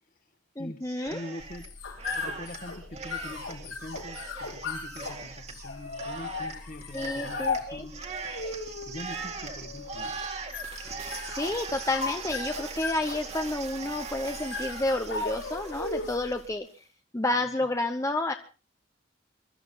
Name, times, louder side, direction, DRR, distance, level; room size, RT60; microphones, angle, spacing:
voice 1, 0.6-1.2 6.9-7.9 11.3-16.7 17.1-18.3, left 2 dB, 15° left, 6 dB, 0.8 m, -30 dB
Cheering, 0.8-1.7 2.0-16.5, right 4 dB, 35° right, 2.1 m, -41 dB
voice 2, 1.1-1.7 2.1-8.0 8.9-10.1 17.3-17.5, left 1 dB, 45° left, 8 dB, 1.8 m, -43 dB
sound 1, 1.4-16.3, left 4 dB, 85° left, 5.5 m, -37 dB
23.5 x 13.0 x 4.0 m, 0.34 s
head